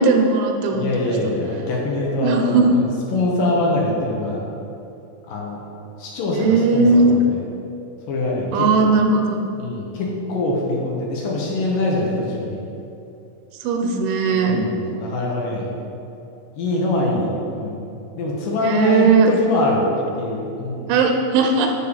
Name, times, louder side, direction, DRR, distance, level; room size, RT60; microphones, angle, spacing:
voice 1, 0.0-1.3 2.2-2.7 6.3-7.2 8.5-9.4 13.6-14.6 18.6-19.3 20.9-21.7, right 4 dB, 75° right, 3 dB, 2.5 m, -18 dB
voice 2, 0.7-4.4 5.3-5.6 6.0-7.4 8.1-9.0 9.6-12.6 14.4-15.7 16.5-17.8 18.2-20.9, left 2 dB, 70° left, -3 dB, 2.5 m, -23 dB
7.5 x 6.9 x 5.0 m, 2.7 s
omnidirectional pair, 4.7 m